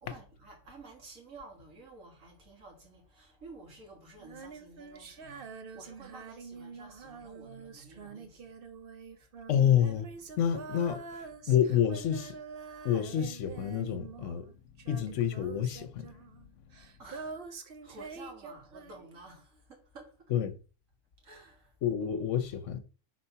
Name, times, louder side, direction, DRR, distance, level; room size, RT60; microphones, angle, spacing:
voice 1, 0.0-5.4 5.7-8.4 12.7-12.9 17.0-17.4 17.8-20.1 21.2-21.7, right 2 dB, 85° right, 2.3 m, -51 dB
Female singing, 4.2-14.5 14.8-19.2, right 5 dB, 50° right, 0.9 m, -46 dB
voice 2, 9.5-10.1 10.4-11.0 11.5-12.4 12.8-14.5 14.9-16.1 20.3-20.5 21.8-22.8, left 9 dB, 70° left, 1.0 m, -28 dB
4.5 x 4.3 x 5.6 m
omnidirectional pair, 1.3 m